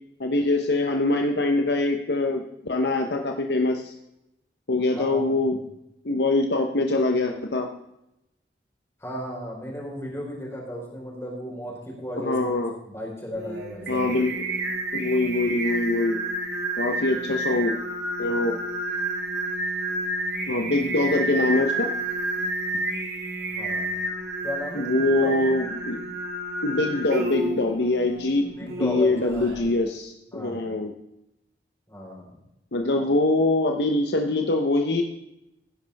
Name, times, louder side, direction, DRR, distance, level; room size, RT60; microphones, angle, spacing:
voice 1, 0.2-3.9 4.7-5.6 6.0-7.7 12.2-12.7 13.9-14.3 14.9-16.2 16.8-17.7 18.2-18.6 20.5-21.9 24.8-26.0 26.6-30.9 32.7-35.0, left 2 dB, 70° left, 3 dB, 1.0 m, -23 dB
voice 2, 5.0-5.6 9.0-14.1 15.2-15.3 23.4-23.9 24.4-25.3 28.6-29.8 30.3-30.8 31.9-32.3, equal, 15° left, -3 dB, 4.4 m, -35 dB
Singing, 13.3-29.6, right 1 dB, 70° right, 3.4 m, -30 dB
17.0 x 10.5 x 3.5 m, 0.86 s
head